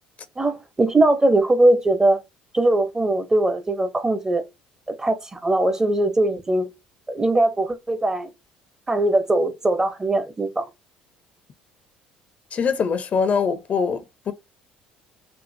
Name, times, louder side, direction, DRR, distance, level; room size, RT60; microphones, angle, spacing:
voice 1, 0.4-2.2 2.5-4.4 5.0-6.7 7.1-8.3 8.9-10.7, right 2 dB, 20° right, 1.0 m, -20 dB
voice 2, 12.5-14.3, left 6 dB, 45° left, 0.8 m, -23 dB
5.3 x 2.5 x 2.7 m
supercardioid pair, 75°, 3 cm